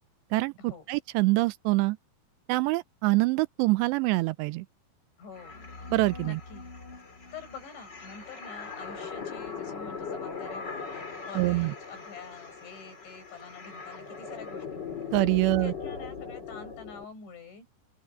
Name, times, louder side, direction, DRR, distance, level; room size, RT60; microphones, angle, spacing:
voice 1, 0.3-2.0 2.5-4.7 5.9-6.4 11.3-11.7 15.1-15.7, right 21 dB, 85° right, 2.7 m, -25 dB
voice 2, 5.2-5.7 6.2-6.6 7.3-14.8 15.4-17.7, left 5 dB, 80° left, 9.3 m, -47 dB
sound 1, 5.3-17.0, left 5 dB, 25° left, 3.6 m, -40 dB
open air
omnidirectional pair, 5.2 m